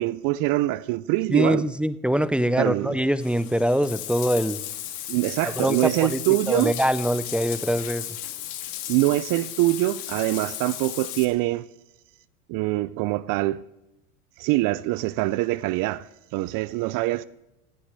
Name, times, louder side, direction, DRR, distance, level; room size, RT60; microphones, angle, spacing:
voice 1, 0.0-1.7 2.6-3.0 5.1-6.8 8.9-11.7 12.5-13.6 14.4-16.1 16.3-17.2, right 18 dB, 50° right, 0.6 m, -24 dB
voice 2, 1.3-4.6 5.4-6.2 6.5-8.1, equal, ahead, 0.6 m, -23 dB
Bathtub (filling or washing), 3.2-11.2, left 13 dB, 60° left, 2.3 m, -35 dB
17.5 x 10.0 x 6.7 m
supercardioid pair, 110°, 44 cm